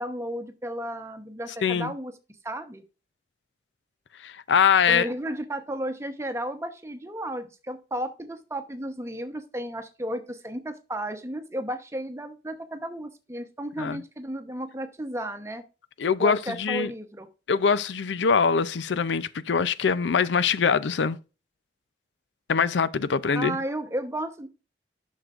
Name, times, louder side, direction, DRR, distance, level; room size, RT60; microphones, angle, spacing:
voice 1, 0.0-2.1 2.4-2.8 4.9-15.6 16.2-17.3 23.2-24.5, right 1 dB, 15° right, 0.9 m, -33 dB
voice 2, 1.6-1.9 4.2-5.1 13.8-14.0 16.0-16.9 17.5-21.2 22.5-23.6, left 6 dB, 85° left, 0.5 m, -23 dB
11.0 x 6.5 x 2.5 m
head